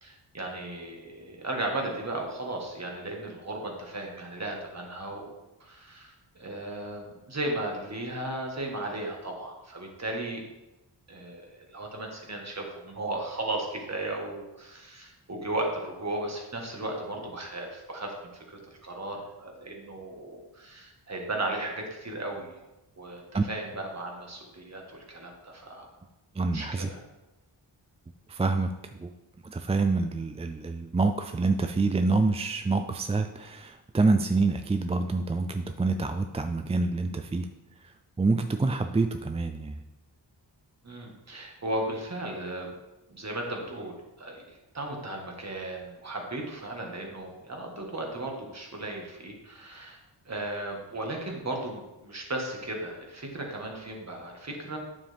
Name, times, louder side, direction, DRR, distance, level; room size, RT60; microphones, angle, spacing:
voice 1, 0.0-5.3 5.6-10.4 11.1-22.5 23.0-25.9 26.5-27.0 40.8-42.8 43.1-50.0 50.3-54.8, right 2 dB, 35° right, 1 dB, 1.8 m, -36 dB
voice 2, 26.3-26.9 28.3-28.7 29.0-29.1 29.4-37.5 37.8-39.8, right 3 dB, 15° right, 7 dB, 0.3 m, -27 dB
9.0 x 7.2 x 3.5 m, 1.0 s
wide cardioid pair, 110°, 44 cm